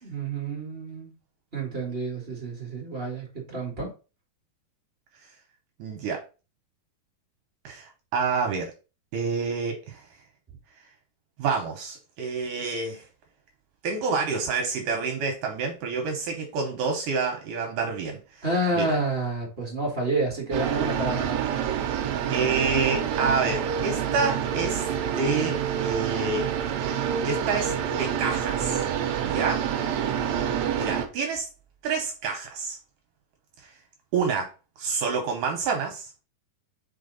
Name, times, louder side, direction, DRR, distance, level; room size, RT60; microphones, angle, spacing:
voice 1, 0.0-1.1 1.5-3.9 18.4-21.5, right 2 dB, 40° right, 0.8 m, -29 dB
voice 2, 5.8-6.2 7.6-8.7 9.1-10.0 11.4-13.0 13.8-18.2 18.8-18.9 22.3-24.9 25.1-26.5 27.2-28.8 29.2-29.6 30.8-31.5 31.8-32.8 34.1-34.5 34.8-36.1, right 4 dB, 70° right, 2.3 m, -28 dB
sound 1, 20.5-31.1, right 8 dB, 90° right, 1.5 m, -27 dB
5.5 x 4.5 x 3.9 m
omnidirectional pair, 4.3 m